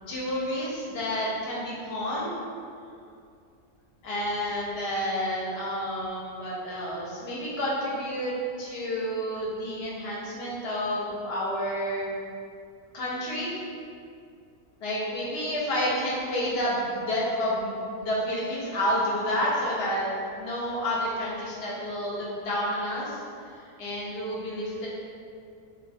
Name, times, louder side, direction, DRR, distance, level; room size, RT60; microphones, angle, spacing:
voice 1, 0.1-2.4 4.0-8.3 8.6-12.1 12.9-13.6 14.8-20.1 20.4-23.2 23.8-24.9, equal, 60° left, -5 dB, 0.7 m, -30 dB
2.3 x 2.1 x 2.5 m, 2.4 s
omnidirectional pair, 1.4 m